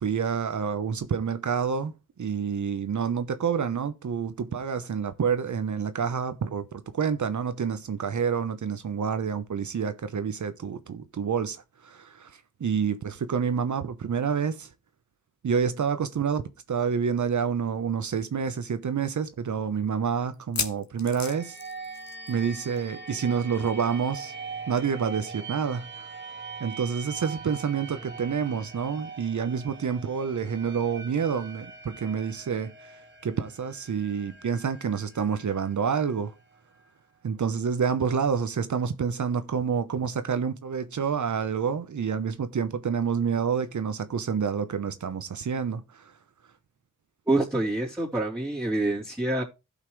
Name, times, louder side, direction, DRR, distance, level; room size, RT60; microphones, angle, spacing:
voice 1, 0.0-14.7 15.4-21.6 22.3-24.3 24.7-26.1 26.6-32.9 33.2-36.3 37.2-46.1, right 6 dB, 60° right, 0.9 m, -28 dB
sound 1, 17.7-17.8 18.1-18.2 18.8-18.9 20.3-22.5 22.7-23.0 23.2-23.3 24.8-24.9, left 5 dB, 55° left, 1.5 m, -35 dB
sound 2, 21.2-36.9, right 4 dB, 35° right, 2.2 m, -42 dB
voice 2, 47.3-49.4, right 2 dB, 5° right, 3.2 m, -26 dB
15.5 x 5.7 x 3.2 m
cardioid pair, 75°, 33 cm